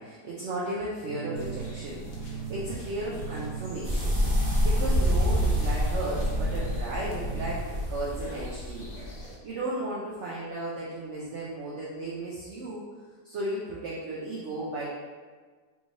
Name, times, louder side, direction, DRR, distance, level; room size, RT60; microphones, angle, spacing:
voice 1, 0.0-4.1 4.6-8.9 9.4-12.8 13.2-14.9, right 2 dB, 70° right, -6 dB, 0.7 m, -35 dB
sound 1, 1.0-7.5, right 7 dB, 85° right, 1.4 m, -39 dB
sound 2, 1.4-9.4, equal, 60° left, 1.1 m, -43 dB
sound 3, 3.8-9.2, equal, 30° right, 1.3 m, -27 dB
3.6 x 3.2 x 2.5 m, 1.4 s
omnidirectional pair, 1.8 m